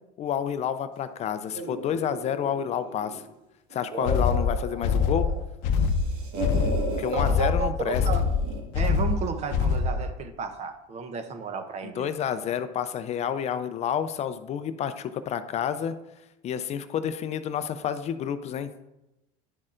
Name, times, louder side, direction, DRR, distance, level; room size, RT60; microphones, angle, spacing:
voice 1, 0.2-3.2 3.7-5.3 7.0-8.0 12.0-15.9 16.4-18.7, left 9 dB, 40° left, 0.4 m, -29 dB
sound 1, 1.5-3.3 3.7-5.4 5.7-7.1 7.9-8.7, right 1 dB, 60° right, 1.6 m, -35 dB
sound 2, 4.0-10.1, left 5 dB, 75° left, 0.7 m, -24 dB
voice 2, 7.1-8.2 8.7-12.1, right 5 dB, 40° right, 0.8 m, -32 dB
10.0 x 6.3 x 2.5 m
supercardioid pair, 110°, 18 cm